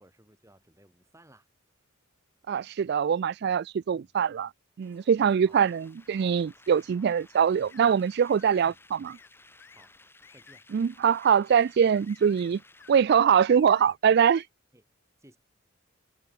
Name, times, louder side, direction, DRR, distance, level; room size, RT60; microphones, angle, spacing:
voice 1, 0.0-1.5 3.9-4.1 5.4-5.6 8.6-8.8 9.7-9.9 10.3-10.7 14.7-14.8 15.2-15.4, right 1 dB, 15° right, 4.8 m, -57 dB
voice 2, 2.5-4.5 4.8-9.1 10.7-12.6 12.9-14.4, right 7 dB, 55° right, 0.3 m, -23 dB
sound 1, 4.8-13.0, left 2 dB, 10° left, 3.2 m, -57 dB
sound 2, 6.7-6.9 7.7-7.9 8.2-8.7 9.1-9.3 9.6-9.9 10.2-10.6 11.0-11.4 11.9-12.5 12.8-13.2 13.5-14.5, left 7 dB, 70° left, 3.0 m, -55 dB
head